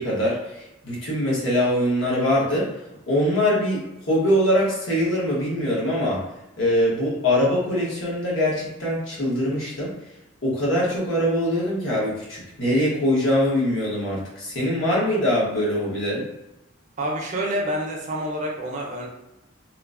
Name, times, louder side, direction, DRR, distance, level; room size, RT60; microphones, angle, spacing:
voice 1, 0.0-2.7 3.1-3.8 4.1-6.2 6.6-9.9 10.4-16.2, equal, 65° left, -6 dB, 1.0 m, -23 dB
voice 2, 17.0-19.1, right 1 dB, 40° right, -1 dB, 0.5 m, -27 dB
3.0 x 2.0 x 2.4 m, 0.91 s
head